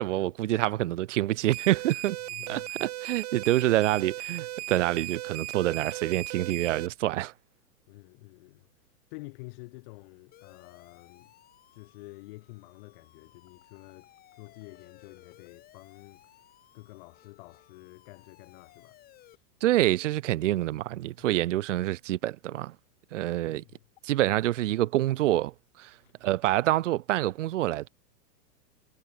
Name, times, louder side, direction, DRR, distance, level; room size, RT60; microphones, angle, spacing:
voice 1, 0.0-2.2 2.5-7.3 19.6-22.7 23.1-23.6 24.0-25.9 26.2-27.9, right 15 dB, 50° right, 1.4 m, -27 dB
sound 1, 1.5-6.9, right 15 dB, 25° right, 0.6 m, -37 dB
voice 2, 2.3-2.7 7.9-8.7 9.1-11.3 11.7-19.4 21.2-21.3 23.6-23.8 26.0-26.1, left 26 dB, 35° left, 5.1 m, -49 dB
Siren, 10.3-19.4, left 13 dB, 20° left, 6.5 m, -58 dB
supercardioid pair, 170°, 48 cm